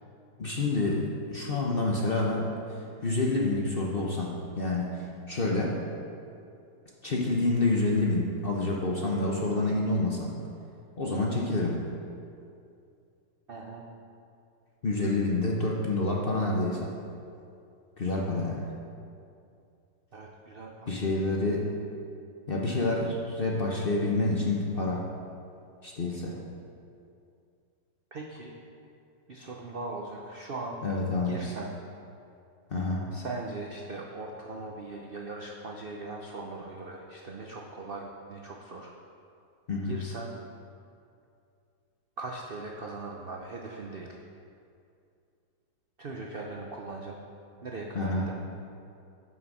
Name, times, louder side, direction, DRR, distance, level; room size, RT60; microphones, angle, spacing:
voice 1, 0.4-2.5 3.0-4.9 5.3-5.8 7.0-10.4 11.0-11.8 14.8-16.9 18.0-18.7 20.9-21.7 22.5-25.0 25.8-26.4 30.8-31.4 32.7-33.1 39.7-39.9 47.9-48.3, left 2 dB, 45° left, -2 dB, 0.7 m, -28 dB
voice 2, 13.5-13.9 20.1-21.0 28.1-28.5 29.3-30.8 31.2-31.7 33.1-38.9 39.8-40.3 42.2-44.2 46.0-47.2 47.6-48.3, right 3 dB, 80° right, 0 dB, 0.5 m, -39 dB
9.4 x 6.2 x 6.2 m, 2.5 s
omnidirectional pair, 2.0 m